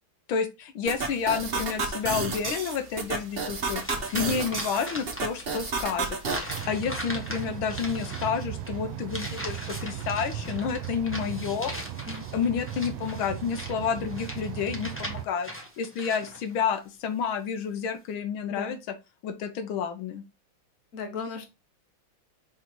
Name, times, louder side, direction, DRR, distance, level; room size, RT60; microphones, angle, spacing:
voice 1, 0.3-3.8 4.1-6.2 6.7-11.7 12.3-15.5 15.8-18.8 19.2-20.2, left 6 dB, 85° left, 9 dB, 1.7 m, -30 dB
sound 1, 0.9-6.6, right 4 dB, 40° right, 0.9 m, -32 dB
sound 2, 3.8-5.5 5.8-16.6, equal, 10° left, 0.9 m, -40 dB
sound 3, 6.5-15.3, right 11 dB, 85° right, 1.5 m, -37 dB
voice 2, 20.9-21.5, left 4 dB, 45° left, 5 dB, 1.4 m, -36 dB
5.8 x 3.8 x 4.6 m, 0.26 s
omnidirectional pair, 2.2 m